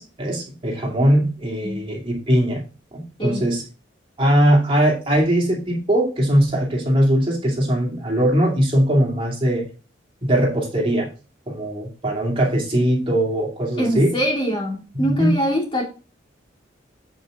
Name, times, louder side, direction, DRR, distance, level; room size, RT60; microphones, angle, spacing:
voice 1, 0.0-2.6 2.9-3.6 4.2-9.7 10.2-11.1 11.5-14.1 14.9-15.3, right 1 dB, 30° right, -2 dB, 2.6 m, -20 dB
voice 2, 13.8-15.8, equal, 30° left, -1 dB, 2.8 m, -23 dB
8.8 x 5.5 x 3.7 m, 0.32 s
head